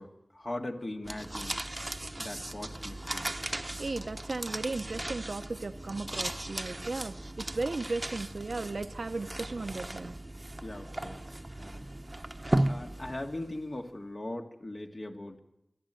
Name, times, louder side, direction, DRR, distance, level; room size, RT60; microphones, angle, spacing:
voice 1, 0.0-1.6 2.2-3.3 10.6-11.2 11.6-11.9 12.6-15.4, left 1 dB, 50° left, 3 dB, 2.1 m, -40 dB
sound 1, 1.0-13.6, right 1 dB, 30° right, 0.9 m, -36 dB
voice 2, 3.8-10.2, right 3 dB, 80° right, 9 dB, 0.7 m, -36 dB
26.5 x 11.5 x 9.1 m, 0.85 s
wide cardioid pair, 60°, 0 cm